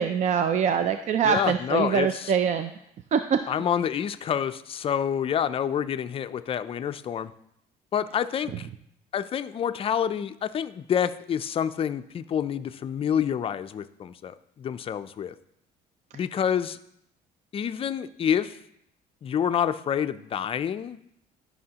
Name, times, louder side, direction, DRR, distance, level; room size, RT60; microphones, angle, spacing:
voice 1, 0.0-2.7 3.1-3.4, right 7 dB, 45° right, 8 dB, 0.4 m, -24 dB
voice 2, 1.2-2.3 3.5-7.3 7.9-8.7 9.1-15.3 16.1-16.8 17.5-18.6 19.2-21.0, left 8 dB, 35° left, 12 dB, 0.4 m, -28 dB
11.5 x 5.5 x 2.9 m, 0.76 s
cardioid pair, 110°, 17 cm